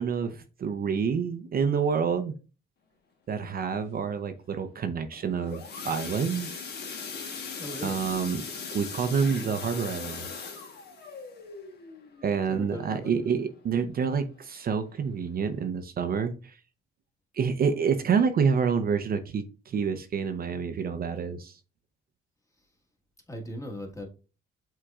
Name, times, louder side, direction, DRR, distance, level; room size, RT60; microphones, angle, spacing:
voice 1, 0.0-2.3 3.3-6.7 7.8-8.4 8.7-10.6 12.2-16.6 17.3-21.6, right 6 dB, 50° right, 8 dB, 0.6 m, -28 dB
sound 1, 5.1-13.8 14.2-14.5 14.8-14.9 15.3-15.4, left 5 dB, 55° left, 1.1 m, -40 dB
voice 2, 7.6-8.0 12.5-13.1 23.3-24.1, left 1 dB, 15° left, 2 dB, 1.4 m, -38 dB
6.1 x 3.7 x 2.3 m, 0.33 s
cardioid pair, 90°, 20 cm